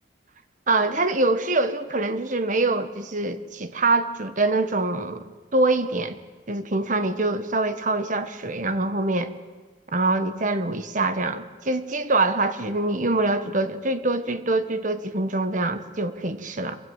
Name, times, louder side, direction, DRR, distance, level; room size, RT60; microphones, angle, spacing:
voice 1, 0.7-6.2 6.5-9.3 9.9-16.8, right 2 dB, 45° right, 10 dB, 1.4 m, -24 dB
26.5 x 23.5 x 8.1 m, 1.4 s
head